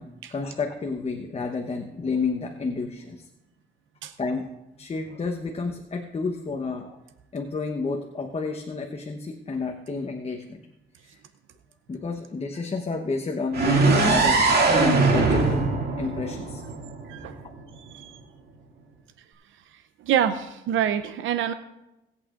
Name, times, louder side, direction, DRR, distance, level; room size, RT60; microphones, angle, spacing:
voice 1, 0.0-3.3 4.2-4.5 4.8-7.0 7.3-10.6 11.0-11.2 11.9-14.4 14.7-15.7 16.0-16.6, left 4 dB, 30° left, 2 dB, 1.0 m, -30 dB
sound 1, 13.5-17.4, right 3 dB, 55° right, 2.3 m, -21 dB
voice 2, 17.8-18.2 20.0-21.5, right 9 dB, 80° right, 10 dB, 0.6 m, -26 dB
19.5 x 8.4 x 2.5 m, 0.94 s
cardioid pair, 90°, 20 cm